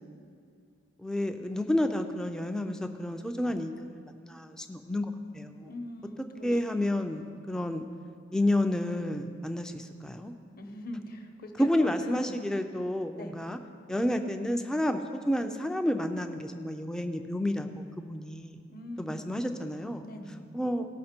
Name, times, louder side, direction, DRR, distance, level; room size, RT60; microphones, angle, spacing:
voice 1, 1.0-5.7 6.4-7.9 8.3-10.3 11.6-13.6 13.9-18.6 19.0-20.1 20.5-20.9, left 1 dB, 5° left, 6 dB, 0.4 m, -30 dB
voice 2, 5.6-6.5 10.6-12.4 13.2-13.4 18.7-19.3 20.0-20.5, left 1 dB, 45° left, 5 dB, 0.9 m, -42 dB
17.0 x 5.7 x 4.4 m, 2.3 s
head